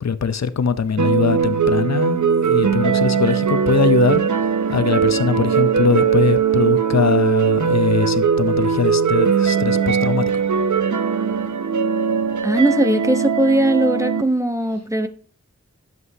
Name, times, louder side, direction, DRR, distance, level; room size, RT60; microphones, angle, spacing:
voice 1, 0.0-4.2 4.7-10.4, left 6 dB, 65° left, 0.7 m, -21 dB
sound 1, 1.0-14.2, right 7 dB, 90° right, 0.7 m, -19 dB
voice 2, 12.4-15.1, right 1 dB, 10° right, 1.0 m, -19 dB
11.0 x 7.7 x 2.7 m
wide cardioid pair, 70°, 29 cm